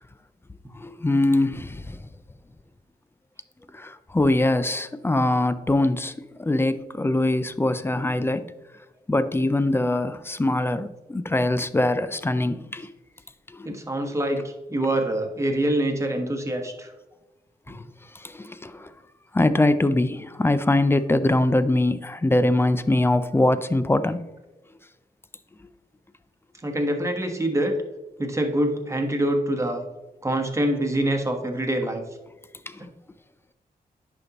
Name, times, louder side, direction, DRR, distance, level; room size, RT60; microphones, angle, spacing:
voice 1, 0.8-2.0 3.7-8.5 9.1-12.9 13.5-13.8 17.7-17.8 18.1-18.9 19.3-24.2 32.7-32.8, left 2 dB, 15° left, 0.4 m, -23 dB
voice 2, 13.6-16.9 17.7-17.8 26.6-27.8 28.2-29.8 30.2-32.0 32.8-32.9, right 1 dB, 20° right, 1.2 m, -25 dB
10.5 x 5.2 x 2.9 m
wide cardioid pair, 105°, 16 cm